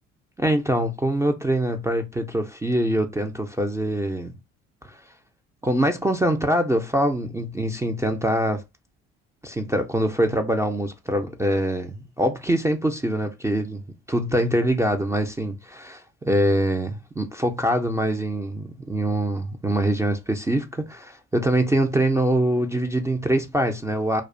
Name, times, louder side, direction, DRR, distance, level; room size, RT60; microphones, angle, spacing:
voice 1, 0.4-4.4 4.8-5.0 5.6-8.6 9.4-13.8 14.1-24.2, right 1 dB, 10° right, 0.4 m, -24 dB
2.4 x 2.1 x 2.5 m
supercardioid pair, 65°, 30 cm